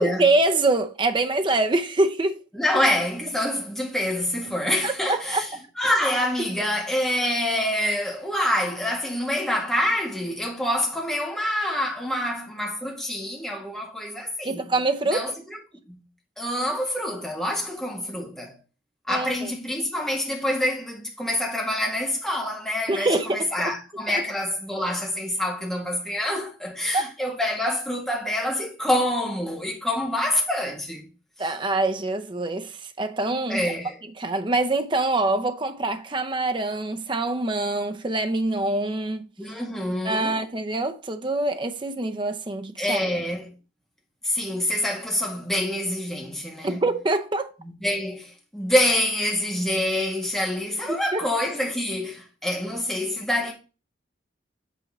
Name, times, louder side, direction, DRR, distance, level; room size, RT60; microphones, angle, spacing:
voice 1, 0.0-2.4 4.8-5.7 6.4-6.5 14.4-15.3 19.1-19.5 22.9-23.7 24.1-24.2 26.9-27.1 31.4-33.7 34.2-39.3 40.0-43.0 46.6-47.5 50.9-51.2, right 2 dB, 25° right, 0.7 m, -25 dB
voice 2, 2.5-5.5 5.8-14.7 15.1-15.6 15.9-16.0 16.4-18.6 19.1-31.0 31.4-31.5 33.5-33.9 39.4-40.4 42.8-43.5 44.2-46.8 47.8-53.5, left 1 dB, ahead, 1.8 m, -26 dB
8.3 x 4.4 x 4.2 m
head